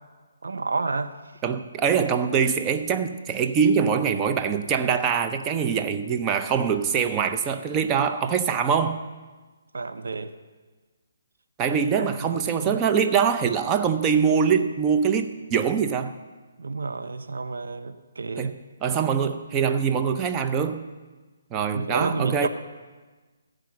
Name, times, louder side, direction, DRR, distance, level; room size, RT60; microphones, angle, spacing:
voice 1, 0.4-1.1 9.7-10.3 12.0-12.8 16.6-18.5 21.7-22.5, right 3 dB, 75° right, 0.6 m, -30 dB
voice 2, 1.4-9.0 11.6-16.1 18.4-20.8 21.5-22.5, right 6 dB, 20° right, 0.6 m, -23 dB
14.5 x 5.1 x 7.5 m
hypercardioid pair, 150°, 0 cm